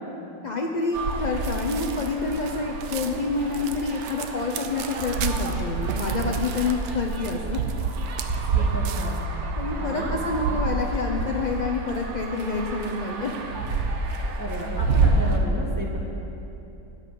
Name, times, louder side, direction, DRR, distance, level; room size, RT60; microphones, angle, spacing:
voice 1, 0.4-7.6 9.6-13.4, left 3 dB, 70° left, 0 dB, 0.4 m, -28 dB
sound 1, 0.9-15.4, right 3 dB, 50° right, 1.1 m, -28 dB
sound 2, 1.4-9.3, right 6 dB, 80° right, 1.3 m, -34 dB
voice 2, 8.5-9.3 9.8-10.1 10.5-10.7 14.4-16.0, right 1 dB, 10° right, -4 dB, 1.7 m, -33 dB
13.5 x 5.4 x 9.1 m, 2.9 s
omnidirectional pair, 1.8 m